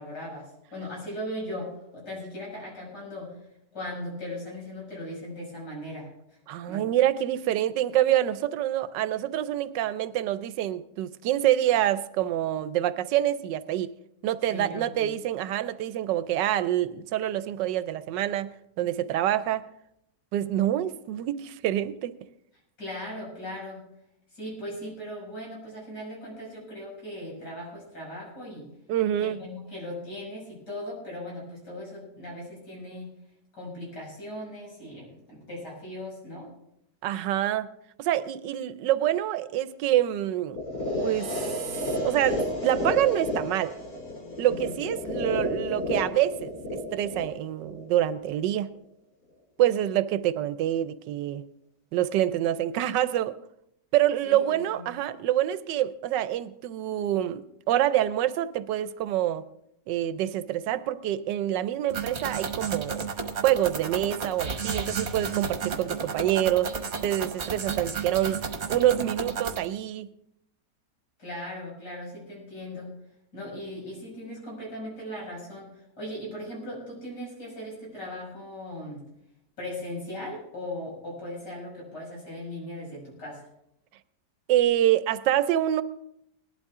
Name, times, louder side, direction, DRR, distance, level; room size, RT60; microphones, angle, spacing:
voice 1, 0.0-3.4 3.7-6.1 6.7-6.8 14.5-15.1 22.8-23.8 24.3-28.7 29.2-33.1 33.5-36.5 44.5-44.8 54.2-54.8 71.2-72.9 73.3-79.0 79.6-83.5, left 1 dB, 75° left, -4 dB, 6.8 m, -38 dB
voice 2, 6.5-13.9 14.2-19.6 20.3-22.1 28.9-29.4 37.0-37.7 38.0-40.6 41.0-41.3 42.0-43.7 44.4-48.7 49.6-51.4 51.9-53.4 53.9-59.4 59.9-63.0 63.4-68.4 68.7-70.1 84.5-85.8, right 12 dB, 85° right, 14 dB, 1.3 m, -26 dB
sound 1, 40.5-48.5, left 1 dB, 55° left, 3.0 m, -32 dB
sound 2, 61.9-69.7, right 5 dB, 40° right, 1.3 m, -32 dB
18.5 x 11.5 x 3.6 m, 0.78 s
omnidirectional pair, 1.9 m